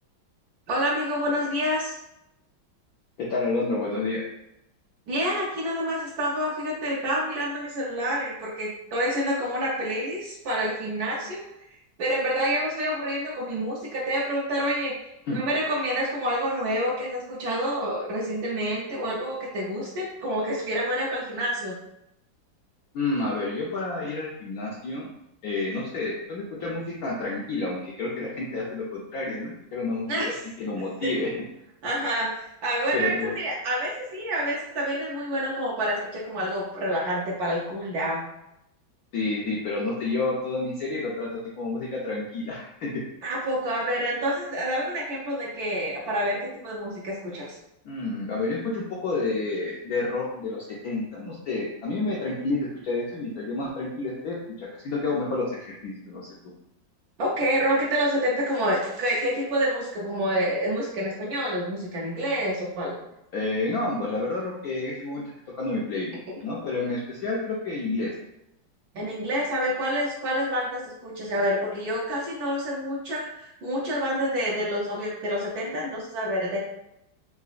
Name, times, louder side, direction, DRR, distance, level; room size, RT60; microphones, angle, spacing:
voice 1, 0.7-2.0 5.1-11.4 12.0-21.7 30.1-30.4 31.0-31.1 31.8-38.2 43.2-46.4 46.6-47.6 57.2-63.0 68.9-76.6, equal, 65° right, -4 dB, 1.0 m, -28 dB
voice 2, 3.2-4.2 15.3-15.4 22.9-25.1 25.4-30.3 30.6-31.3 32.9-33.4 39.1-41.3 41.6-43.0 47.8-56.3 63.3-68.1, left 3 dB, 75° left, -4 dB, 0.8 m, -29 dB
3.9 x 2.4 x 2.4 m, 0.85 s
omnidirectional pair, 2.0 m